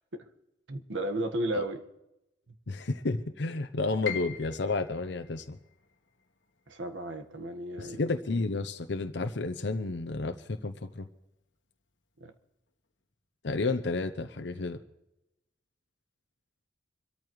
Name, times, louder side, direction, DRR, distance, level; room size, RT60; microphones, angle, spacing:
voice 1, 0.7-1.8 6.7-8.0 12.2-12.3, right 1 dB, 85° right, 6 dB, 1.5 m, -33 dB
voice 2, 2.7-5.6 7.8-11.1 13.4-14.8, left 3 dB, 65° left, 7 dB, 0.7 m, -31 dB
Piano, 4.0-10.0 10.3-11.5 11.9-12.0 12.7-13.0, left 9 dB, 90° left, 1.4 m, -45 dB
25.5 x 13.5 x 3.2 m, 0.90 s
head